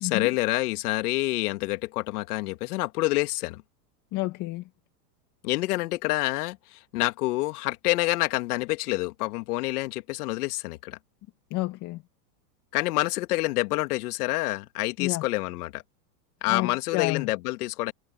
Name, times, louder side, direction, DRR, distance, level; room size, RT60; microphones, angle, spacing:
voice 1, 0.0-3.6 5.4-11.0 12.7-15.8 16.4-17.9, left 20 dB, 65° left, 2.5 m, -27 dB
voice 2, 4.1-4.6 11.5-12.0 15.0-15.2 16.5-17.3, left 18 dB, 40° left, 2.0 m, -29 dB
supercardioid pair, 130°, 49 cm